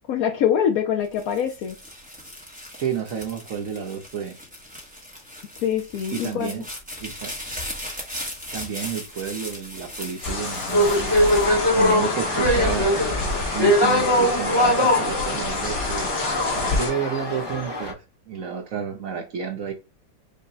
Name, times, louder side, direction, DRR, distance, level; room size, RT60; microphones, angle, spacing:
voice 1, 0.1-1.8 5.6-6.6, left 9 dB, 70° left, 0.9 m, -24 dB
sound 1, 1.0-12.4 12.9-13.5, equal, 10° right, 0.6 m, -38 dB
voice 2, 2.8-4.4 6.1-6.7 7.0-7.3 8.5-11.1 11.8-12.9 13.5-16.1 16.6-18.0 18.3-19.7, right 7 dB, 60° right, 0.9 m, -30 dB
sound 2, 10.2-16.9, left 3 dB, 55° left, 1.9 m, -28 dB
sound 3, 10.7-17.9, left 1 dB, 20° left, 0.8 m, -22 dB
5.4 x 2.1 x 3.8 m
omnidirectional pair, 1.9 m